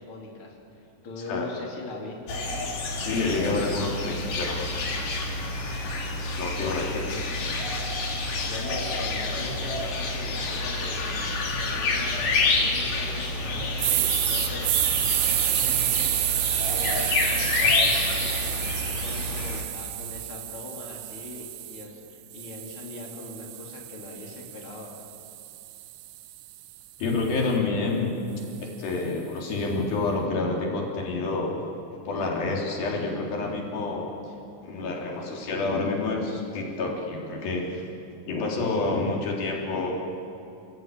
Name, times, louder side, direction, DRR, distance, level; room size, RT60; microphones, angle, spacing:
voice 1, 0.0-2.5 6.9-7.3 8.4-14.7 15.1-16.2 16.7-24.9, left 3 dB, 40° left, -1 dB, 4.1 m, -41 dB
sound 1, 2.3-19.6, left 3 dB, 70° left, 4.3 m, -28 dB
voice 2, 3.0-4.6 6.3-7.0 27.0-28.1 28.8-31.6 32.1-34.1 34.6-37.9 38.3-39.9, left 3 dB, 85° left, -1 dB, 5.1 m, -28 dB
sound 2, 13.8-21.9 22.3-26.5, right 16 dB, 80° right, 2.4 m, -29 dB
30.0 x 17.0 x 9.0 m, 2.5 s
omnidirectional pair, 4.1 m